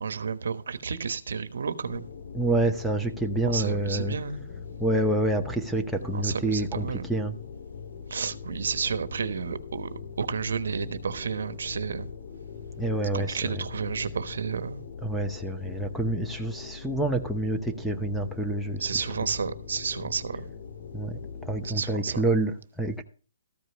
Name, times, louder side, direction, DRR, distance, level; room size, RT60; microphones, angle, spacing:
voice 1, 0.0-2.1 3.5-4.4 6.1-7.1 8.1-12.1 13.1-14.8 18.8-20.5 21.6-22.2, right 5 dB, 75° right, 1.1 m, -31 dB
sound 1, 1.9-21.7, left 6 dB, 60° left, 1.7 m, -41 dB
voice 2, 2.3-4.2 4.8-7.4 12.8-13.5 15.0-18.8 20.9-23.0, right 2 dB, ahead, 0.8 m, -28 dB
14.0 x 5.2 x 6.1 m
hypercardioid pair, 155°, 0 cm